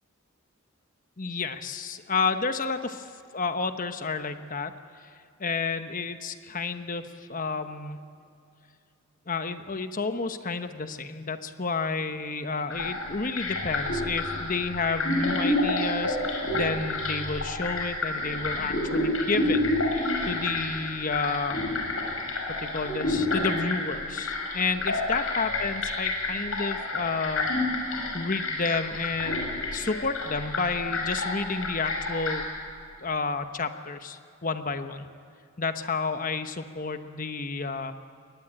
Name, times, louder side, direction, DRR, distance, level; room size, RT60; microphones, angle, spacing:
voice 1, 1.2-3.0 3.3-4.7 5.0-5.1 5.4-7.0 7.3-8.0 9.3-21.6 22.6-27.5 28.1-32.5 33.0-35.1 35.6-37.9, left 4 dB, 40° left, 9 dB, 1.1 m, -31 dB
sound 1, 12.7-32.4, left 2 dB, 75° left, 6.3 m, -29 dB
23.0 x 19.0 x 8.9 m, 2.4 s
head